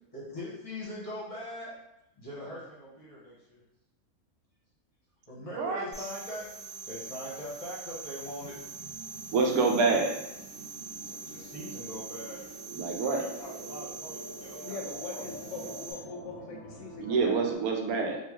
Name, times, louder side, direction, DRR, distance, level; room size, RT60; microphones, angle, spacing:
voice 1, 0.1-1.7 2.2-3.6 5.3-6.5 6.9-8.6 11.0-12.4 13.0-15.2 15.6-15.7, equal, 30° left, -6 dB, 0.8 m, -42 dB
sound 1, 5.9-15.9, right 4 dB, 65° right, 1.4 m, -44 dB
sound 2, 8.3-17.6, right 2 dB, 20° right, 0.5 m, -47 dB
voice 2, 9.3-10.1 12.7-13.2 17.0-18.2, right 4 dB, 85° right, 2 dB, 1.1 m, -26 dB
voice 3, 14.6-17.5, left 4 dB, 70° left, 0 dB, 0.8 m, -41 dB
3.7 x 2.4 x 3.0 m, 0.91 s
omnidirectional pair, 1.5 m